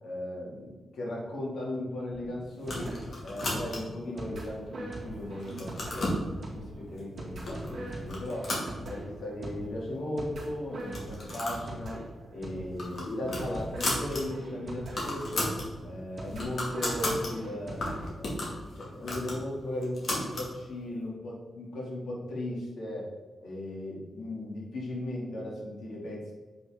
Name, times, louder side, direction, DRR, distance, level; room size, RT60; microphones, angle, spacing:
voice 1, 0.0-3.0 3.2-6.2 6.5-8.5 8.8-12.0 12.3-15.5 15.8-17.8 18.2-23.1 23.4-26.3, left 1 dB, 75° left, -4 dB, 2.5 m, -37 dB
sound 1, 2.1-18.1, right 1 dB, 50° right, 2.1 m, -42 dB
sound 2, 2.6-4.0 4.6-5.1 5.4-6.2 7.0-7.1 7.5-7.7 8.1-9.3 9.6-9.7 9.9-10.0 10.8-11.7 12.0-12.2 12.6-14.2 14.5-14.6 14.8-15.7 16.1-17.3 17.8-20.5, left 1 dB, 50° left, 2.3 m, -34 dB
8.0 x 5.4 x 3.7 m, 1.3 s
wide cardioid pair, 135°, 0 cm